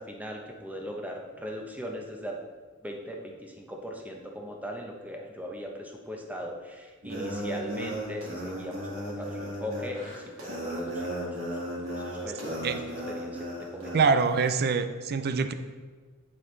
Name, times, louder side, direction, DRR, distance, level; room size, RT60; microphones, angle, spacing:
voice 1, 0.0-2.4 2.8-11.4 11.6-12.8 13.2-13.4 13.7-14.0, equal, 5° right, 1 dB, 0.9 m, -39 dB
sound 1, 7.0-14.0, equal, 65° right, 2.1 m, -35 dB
voice 2, 13.9-15.5, right 5 dB, 45° right, 9 dB, 0.5 m, -24 dB
8.6 x 7.1 x 3.3 m, 1.5 s
head